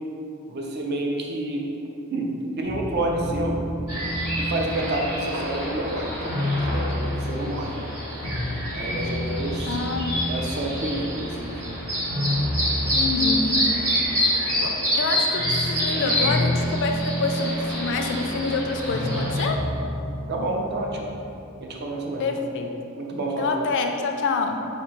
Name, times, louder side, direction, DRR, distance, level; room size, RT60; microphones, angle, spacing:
voice 1, 0.5-1.7 2.1-3.6 4.4-7.8 8.7-9.8 10.3-11.8 20.3-21.1 21.6-22.3 23.0-23.5, right 1 dB, 50° right, 0 dB, 0.5 m, -29 dB
sound 1, 2.6-14.6 15.0-21.4, left 1 dB, 85° right, 1.3 m, -30 dB
sound 2, 3.9-19.4, equal, 65° right, 1.4 m, -28 dB
voice 2, 9.7-10.2 12.9-13.9 14.6-19.6 22.2-22.8 23.4-24.7, left 3 dB, 55° left, 4 dB, 0.4 m, -27 dB
4.1 x 2.7 x 4.5 m, 2.8 s
head